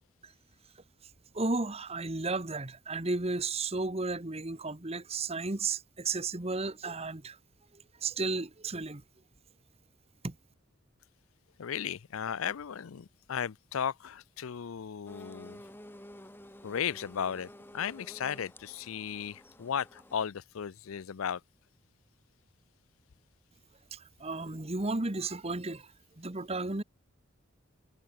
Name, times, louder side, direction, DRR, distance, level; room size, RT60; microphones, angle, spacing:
voice 1, 1.3-7.4 8.0-9.0 10.2-10.3 23.9-25.9 26.2-26.8, right 3 dB, 30° right, 1.2 m, -33 dB
voice 2, 11.6-15.6 16.6-21.4, left 8 dB, 85° left, 0.5 m, -35 dB
sound 1, 15.1-20.3, left 1 dB, 10° left, 6.4 m, -51 dB
head